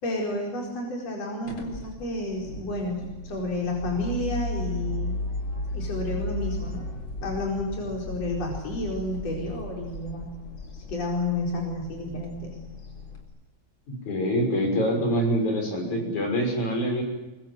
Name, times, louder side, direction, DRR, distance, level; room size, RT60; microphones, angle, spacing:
voice 1, 0.0-5.2 5.7-6.9 7.2-10.3 10.7-12.6, left 2 dB, 60° left, -1 dB, 5.8 m, -31 dB
sound 1, 1.5-13.2, left 1 dB, 40° left, 4.6 m, -35 dB
voice 2, 14.1-17.0, equal, 75° left, 2 dB, 7.7 m, -25 dB
24.5 x 24.0 x 7.8 m, 1.1 s
omnidirectional pair, 3.4 m